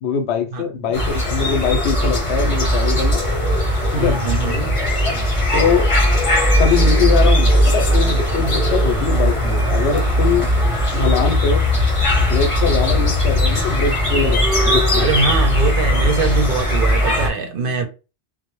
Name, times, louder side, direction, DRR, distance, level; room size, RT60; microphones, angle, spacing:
voice 1, 0.0-3.2 3.9-4.1 5.5-5.9 6.6-10.5 10.9-11.6 12.2-15.1, left 5 dB, 85° left, 0.9 m, -22 dB
sound 1, 0.9-17.3, equal, 35° left, 0.7 m, -18 dB
voice 2, 4.0-4.7 15.0-17.9, right 3 dB, 65° right, 0.7 m, -22 dB
2.1 x 2.0 x 2.9 m
omnidirectional pair, 1.1 m